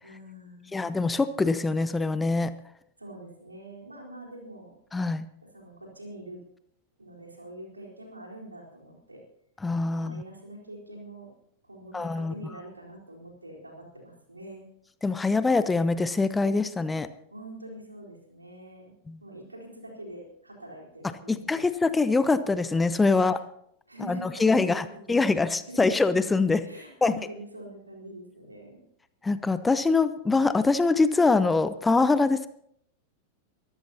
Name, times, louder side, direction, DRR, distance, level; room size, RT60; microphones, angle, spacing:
voice 1, 0.0-0.8 3.0-4.7 5.5-6.4 7.0-9.2 9.9-11.3 11.6-14.6 17.3-18.9 19.2-21.6 23.1-23.4 23.9-25.3 25.7-25.9 26.6-28.8, right 1 dB, 80° right, -1 dB, 4.1 m, -44 dB
voice 2, 0.7-2.5 4.9-5.3 9.6-10.2 11.9-12.3 15.0-17.1 19.1-19.2 21.0-23.4 24.0-26.6 27.0-27.1 29.2-32.5, left 3 dB, 10° left, 14 dB, 0.7 m, -24 dB
23.5 x 14.0 x 2.9 m, 0.69 s
figure-of-eight pair, 90°, 0 cm